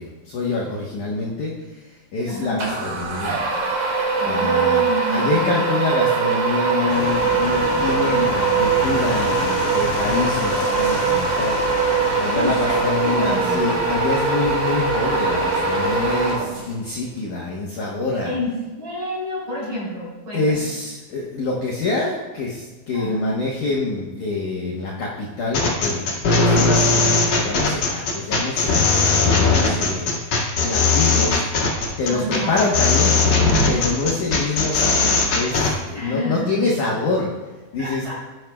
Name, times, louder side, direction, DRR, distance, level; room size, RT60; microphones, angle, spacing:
voice 1, 0.0-3.4 4.2-4.8 5.1-18.3 20.3-26.1 26.3-31.4 31.7-33.2 33.7-37.3 37.7-38.1, left 3 dB, 70° left, -3 dB, 1.9 m, -26 dB
voice 2, 2.2-2.6 4.2-5.8 12.3-13.7 18.2-20.7 22.9-23.4 32.1-32.7 35.9-36.7 37.8-38.1, left 1 dB, 35° right, -6 dB, 3.8 m, -29 dB
sound 1, 2.6-16.9, right 4 dB, 50° right, 2.4 m, -21 dB
sound 2, 6.9-16.4, left 6 dB, 85° left, 3.2 m, -31 dB
sound 3, 25.5-35.7, left 3 dB, 50° left, 2.5 m, -18 dB
15.5 x 9.2 x 2.3 m, 1.2 s
omnidirectional pair, 5.2 m